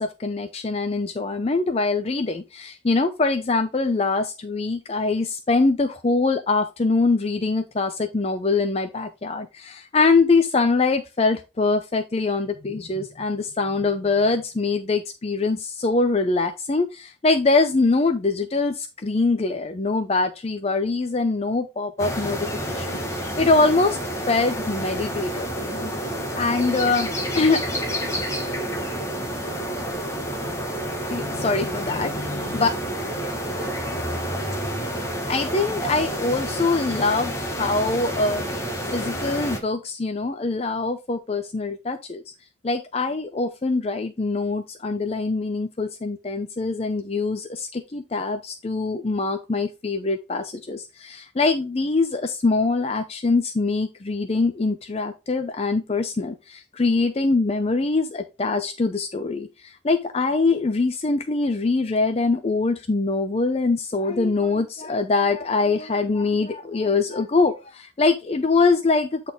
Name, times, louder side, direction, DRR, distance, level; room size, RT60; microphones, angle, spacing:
voice 1, 0.0-24.0 24.3-25.9 26.3-27.1 27.3-27.6 31.1-32.7 35.3-38.4 38.9-42.2 42.6-69.3, left 3 dB, 35° left, 9 dB, 0.5 m, -23 dB
sound 1, 22.0-39.6, equal, 15° left, 1.5 m, -29 dB
8.5 x 4.1 x 3.5 m, 0.27 s
head